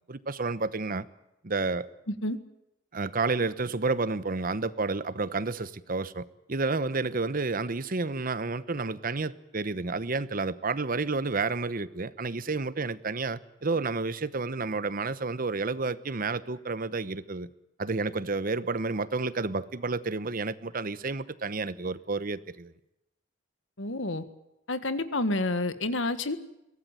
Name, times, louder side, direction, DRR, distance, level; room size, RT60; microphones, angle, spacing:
voice 1, 0.1-1.0 1.4-1.9 2.9-17.5 17.8-22.7, right 3 dB, 45° right, 15 dB, 0.9 m, -30 dB
voice 2, 2.1-2.4 23.8-24.2 24.7-26.4, left 2 dB, 75° left, 11 dB, 1.7 m, -29 dB
23.0 x 17.5 x 9.1 m, 0.86 s
head